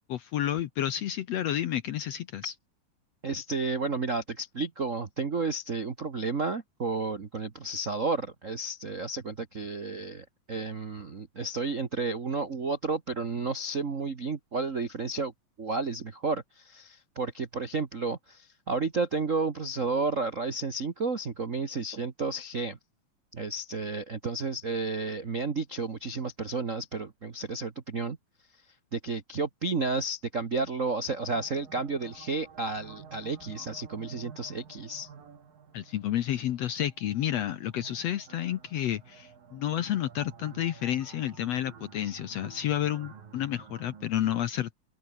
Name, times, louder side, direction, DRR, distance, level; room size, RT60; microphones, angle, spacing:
voice 1, 0.1-2.5 35.7-44.7, left 11 dB, 65° left, 1.7 m, -30 dB
voice 2, 3.2-15.3 15.6-22.8 23.3-28.2 28.9-35.1 42.1-42.2, right 3 dB, 55° right, 0.8 m, -32 dB
sound 1, 31.1-44.1, right 7 dB, 85° right, 5.4 m, -51 dB
open air
omnidirectional pair, 3.9 m